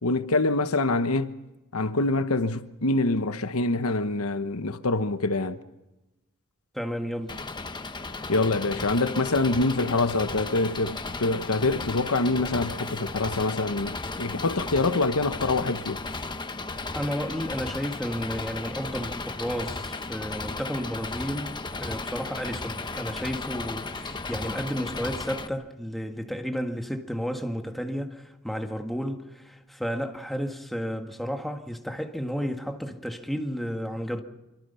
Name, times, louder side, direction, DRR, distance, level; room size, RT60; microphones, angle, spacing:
voice 1, 0.0-1.3 1.7-5.6 8.3-16.0, left 2 dB, 80° left, 1.2 m, -25 dB
voice 2, 6.7-7.3 16.9-34.2, equal, ahead, 1.8 m, -32 dB
Engine, 7.3-25.5, left 3 dB, 20° left, 1.0 m, -35 dB
26.5 x 24.5 x 5.7 m
head